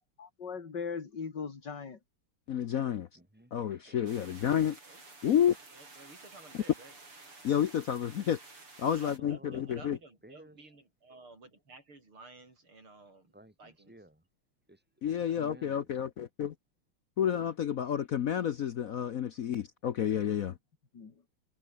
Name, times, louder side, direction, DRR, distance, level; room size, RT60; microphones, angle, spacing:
voice 1, 0.2-2.0 20.9-21.1, left 5 dB, 50° left, 3.2 m, -39 dB
voice 2, 2.5-3.1 3.5-4.8 5.2-5.6 7.4-8.4 8.8-10.0 15.0-16.5 17.2-20.6, left 9 dB, 65° left, 0.8 m, -30 dB
voice 3, 3.1-4.0 9.2-10.6 13.3-14.2 14.7-15.9, right 1 dB, 5° right, 3.3 m, -56 dB
sound 1, 4.1-9.2, right 3 dB, 90° right, 7.7 m, -52 dB
voice 4, 5.7-6.9 8.8-13.9, right 3 dB, 70° right, 7.7 m, -53 dB
omnidirectional pair, 2.4 m